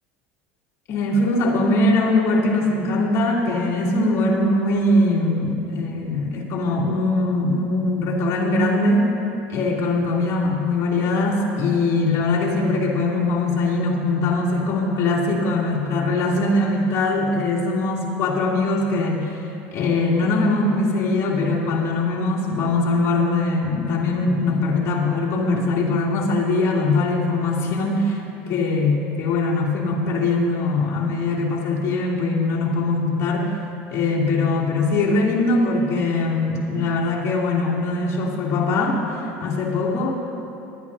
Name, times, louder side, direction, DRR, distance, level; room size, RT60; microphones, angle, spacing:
voice 1, 0.9-9.1 9.5-19.4 19.7-28.2 28.5-33.5 33.9-40.1, left 2 dB, 50° left, -5 dB, 3.0 m, -21 dB
20.0 x 12.5 x 2.7 m, 2.9 s
supercardioid pair, 105°, 7 cm